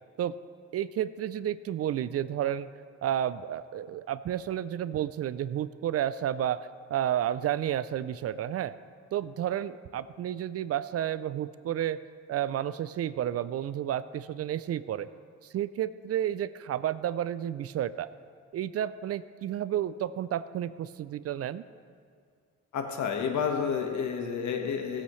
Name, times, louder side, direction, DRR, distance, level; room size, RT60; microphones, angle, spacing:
voice 1, 0.7-2.7 3.0-8.7 9.1-12.0 12.3-15.1 15.5-18.1 18.5-21.6, right 11 dB, 55° right, 16 dB, 0.4 m, -31 dB
voice 2, 22.7-25.0, left 6 dB, 70° left, 3 dB, 1.5 m, -30 dB
18.0 x 8.6 x 3.2 m, 2.2 s
cardioid pair, 90°, 30 cm